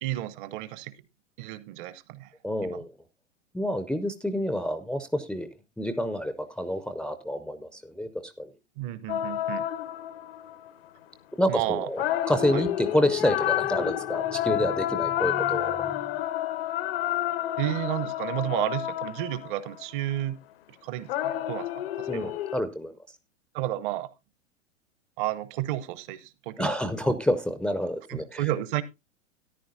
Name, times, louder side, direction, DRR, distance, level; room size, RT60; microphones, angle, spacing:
voice 1, 0.0-0.9 1.4-2.3 2.6-2.8 8.8-9.7 11.5-11.9 12.5-12.6 17.6-20.4 20.8-21.7 22.0-22.3 23.5-24.1 25.2-26.7 28.1-28.8, right 14 dB, 40° right, 15 dB, 0.9 m, -31 dB
voice 2, 2.4-2.9 3.5-5.5 5.8-8.5 11.4-16.0 22.1-22.9 26.6-28.4, equal, ahead, 9 dB, 0.5 m, -28 dB
sound 1, 9.1-10.7 12.0-19.8 21.1-22.6, left 13 dB, 50° left, 0.7 m, -30 dB
13.5 x 10.0 x 2.7 m, 0.24 s
figure-of-eight pair, 100°, 37 cm